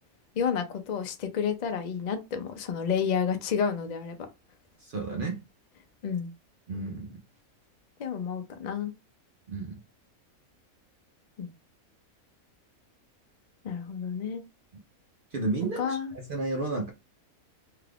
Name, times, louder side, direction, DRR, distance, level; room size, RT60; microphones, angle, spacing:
voice 1, 0.4-4.2 6.0-6.3 8.0-8.9 11.4-11.5 13.6-14.4 15.8-16.1, left 7 dB, 80° left, 0.4 m, -30 dB
voice 2, 4.8-5.4 6.7-7.2 9.5-9.8 15.3-16.0 16.3-16.9, right 3 dB, 55° right, 0.6 m, -31 dB
2.8 x 2.4 x 3.3 m
omnidirectional pair, 1.5 m